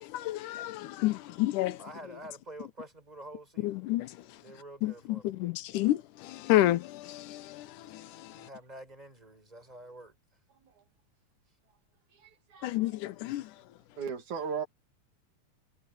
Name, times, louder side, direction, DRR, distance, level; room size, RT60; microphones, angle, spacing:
voice 1, 0.0-1.8 3.6-4.1 4.8-8.5 12.6-13.5, left 15 dB, 85° left, 2.3 m, -30 dB
voice 2, 1.6-3.9 4.3-5.4 8.3-10.2, right 1 dB, 10° right, 5.0 m, -48 dB
voice 3, 12.2-12.7 14.0-14.7, right 6 dB, 70° right, 3.7 m, -36 dB
omnidirectional pair, 3.5 m